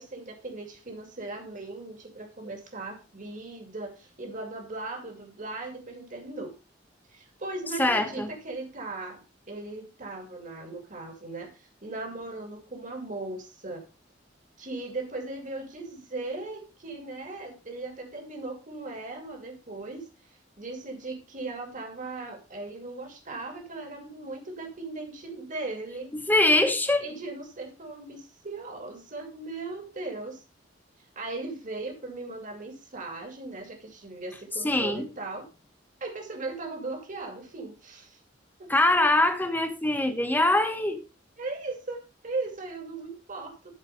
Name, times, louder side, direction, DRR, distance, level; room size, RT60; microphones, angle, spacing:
voice 1, 0.0-6.5 7.1-9.2 9.5-13.8 14.6-20.1 20.6-26.1 27.0-30.4 31.2-35.5 36.0-38.2 38.6-38.7 41.4-43.7, right 2 dB, 45° right, 2.5 m, -38 dB
voice 2, 7.8-8.3 26.1-27.1 34.6-35.1 38.7-41.0, left 2 dB, 10° left, 1.3 m, -23 dB
13.0 x 4.6 x 5.1 m
head